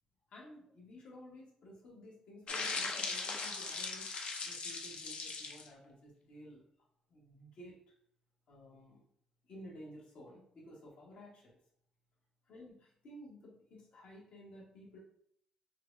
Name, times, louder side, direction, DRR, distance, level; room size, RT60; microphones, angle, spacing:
voice 1, 0.3-4.2 4.4-6.6 7.1-7.7 8.5-9.0 9.5-11.6 12.5-15.0, equal, 75° left, -3 dB, 1.3 m, -54 dB
sound 1, 2.5-5.7, left 4 dB, 55° left, 0.5 m, -39 dB
4.5 x 2.2 x 2.5 m, 0.66 s
supercardioid pair, 65°, 2 cm